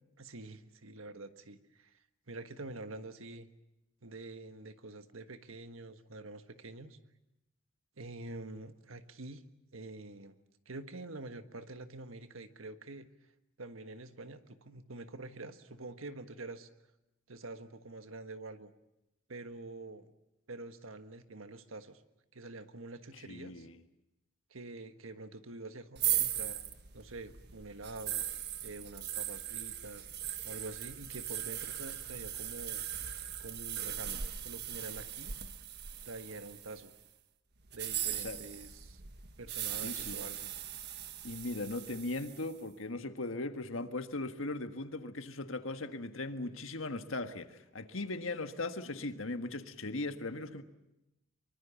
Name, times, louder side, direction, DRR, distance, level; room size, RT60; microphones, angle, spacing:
voice 1, 0.2-2.0 2.3-3.5 4.0-7.0 8.0-9.4 9.7-10.4 10.6-13.1 13.6-16.7 17.3-18.7 19.3-20.1 20.5-22.0 22.3-23.7 24.5-26.6 26.9-28.2 28.6-30.1 30.4-32.8 33.4-34.2 34.4-35.3 36.0-36.9 37.7-39.0 39.4-40.5, right 2 dB, 80° right, 1.5 m, -46 dB
voice 2, 23.1-23.8 38.1-38.4 39.8-40.2 41.2-50.6, left 2 dB, 75° left, 1.6 m, -38 dB
sound 1, 26.0-36.9 37.7-42.5, right 11 dB, 55° right, 1.5 m, -39 dB
24.0 x 24.0 x 7.1 m
head